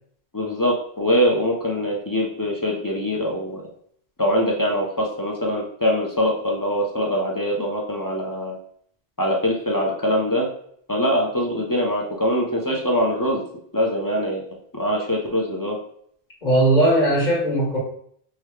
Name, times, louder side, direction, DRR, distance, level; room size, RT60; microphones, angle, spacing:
voice 1, 0.3-3.6 4.2-8.6 9.2-10.5 10.9-13.4 13.7-14.4 14.7-15.8, equal, 25° left, -2 dB, 0.5 m, -23 dB
voice 2, 16.4-17.8, right 1 dB, 45° left, -4 dB, 1.5 m, -18 dB
4.9 x 2.2 x 3.1 m, 0.65 s
omnidirectional pair, 1.0 m